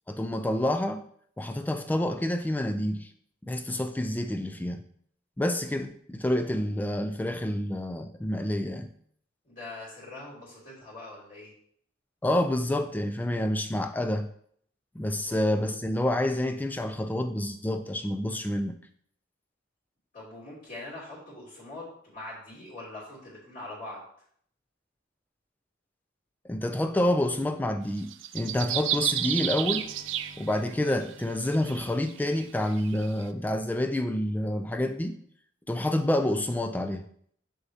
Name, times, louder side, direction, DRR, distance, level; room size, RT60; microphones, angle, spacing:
voice 1, 0.1-1.0 1.4-3.1 3.4-4.8 5.4-8.9 12.2-14.3 15.0-18.8 26.4-29.9 30.4-35.1 35.7-37.0, left 1 dB, 10° left, 8 dB, 0.3 m, -28 dB
voice 2, 9.4-11.5 15.3-15.4 20.1-24.0, left 2 dB, 45° left, -8 dB, 2.8 m, -43 dB
sound 1, 28.0-30.9 31.5-33.1, right 12 dB, 75° right, 0.4 m, -31 dB
sound 2, 28.5-32.8, equal, 35° right, 0.9 m, -51 dB
6.4 x 6.1 x 2.8 m, 0.63 s
head